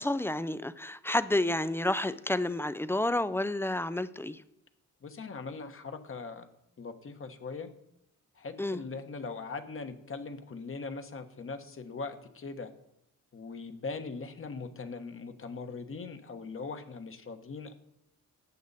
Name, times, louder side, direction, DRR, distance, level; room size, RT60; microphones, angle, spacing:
voice 1, 0.0-4.4 8.6-8.8, left 1 dB, 5° left, 14 dB, 0.4 m, -30 dB
voice 2, 5.0-6.5 6.8-7.7 8.3-12.7 13.3-17.7, left 4 dB, 40° left, 7 dB, 1.2 m, -40 dB
14.0 x 8.5 x 4.1 m, 0.79 s
cardioid pair, 105°, 33 cm